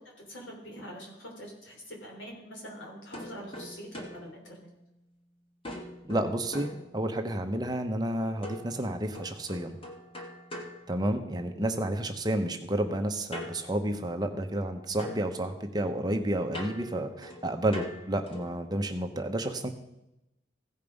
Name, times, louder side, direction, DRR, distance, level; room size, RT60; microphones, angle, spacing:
voice 1, 0.3-4.6, equal, 85° left, -2 dB, 3.6 m, -44 dB
sound 1, 3.1-5.2 5.6-7.5 8.4-11.7 13.3-14.7 15.0-18.7, left 1 dB, 30° left, 1.3 m, -44 dB
voice 2, 6.1-9.8 10.9-19.7, right 1 dB, 20° right, 5 dB, 0.8 m, -30 dB
16.0 x 5.3 x 5.2 m, 0.90 s
head